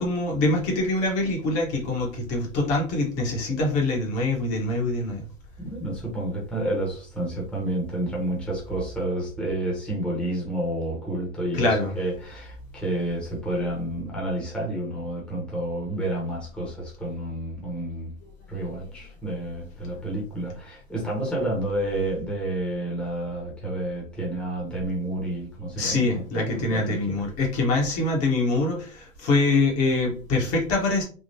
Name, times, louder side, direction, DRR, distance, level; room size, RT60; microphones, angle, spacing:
voice 1, 0.0-5.2 11.5-11.9 25.8-31.0, left 2 dB, 35° left, 0 dB, 1.2 m, -24 dB
voice 2, 5.6-18.1 18.5-27.2, right 1 dB, 5° left, -4 dB, 1.1 m, -30 dB
3.6 x 2.3 x 2.7 m, 0.39 s
hypercardioid pair, 120°, 40 cm